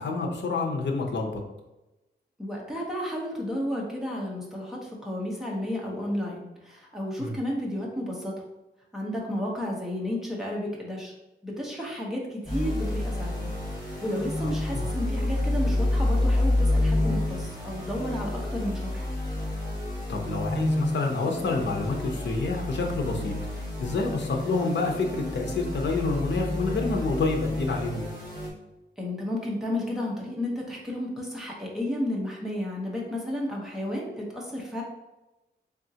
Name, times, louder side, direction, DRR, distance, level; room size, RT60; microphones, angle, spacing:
voice 1, 0.0-1.4 7.2-7.4 14.4-14.9 20.1-28.1, left 3 dB, 70° left, 2 dB, 0.7 m, -28 dB
voice 2, 2.4-8.3 8.9-11.1 11.4-13.5 14.0-19.1 29.0-34.8, left 1 dB, ahead, -4 dB, 1.0 m, -32 dB
sound 1, 12.4-28.5, left 1 dB, 20° left, 1.4 m, -29 dB
3.8 x 3.5 x 2.8 m, 1.0 s
wide cardioid pair, 145°, 19 cm